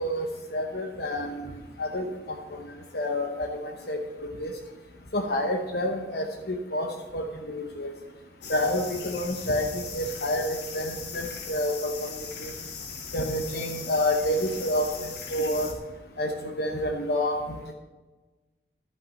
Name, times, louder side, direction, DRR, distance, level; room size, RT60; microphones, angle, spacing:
voice 1, 0.0-4.5 5.1-7.9 8.5-12.5 13.1-15.7 16.2-17.7, left 1 dB, 60° left, 2 dB, 0.9 m, -29 dB
sound 1, 8.4-15.7, left 5 dB, 80° left, 1.6 m, -39 dB
11.0 x 5.8 x 6.5 m, 1.3 s
head